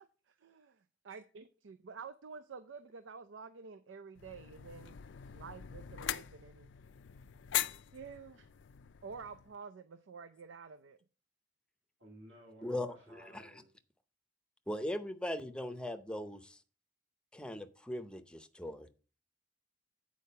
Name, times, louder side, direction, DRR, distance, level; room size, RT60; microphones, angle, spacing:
voice 1, 0.3-5.0 5.3-6.7 7.9-8.5 9.0-11.0, right 5 dB, 90° right, 12 dB, 0.5 m, -49 dB
Water Fountain Pedal, 4.2-9.5, left 12 dB, 75° left, 0.4 m, -41 dB
voice 2, 12.0-13.6, equal, 70° right, -3 dB, 2.5 m, -56 dB
voice 3, 12.6-12.9 13.3-13.5 14.7-16.6 17.3-18.9, left 1 dB, 5° left, 9 dB, 0.6 m, -39 dB
8.5 x 4.7 x 5.4 m, 0.36 s
head